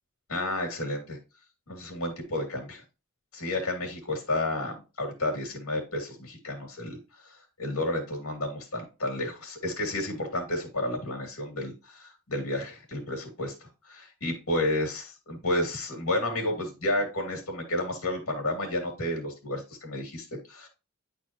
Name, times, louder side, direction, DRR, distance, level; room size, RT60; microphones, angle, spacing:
voice 1, 0.3-1.2 1.7-2.8 3.3-7.3 7.6-13.5 13.8-20.7, left 1 dB, 80° left, 2 dB, 2.3 m, -31 dB
9.6 x 4.3 x 2.9 m, 0.29 s
head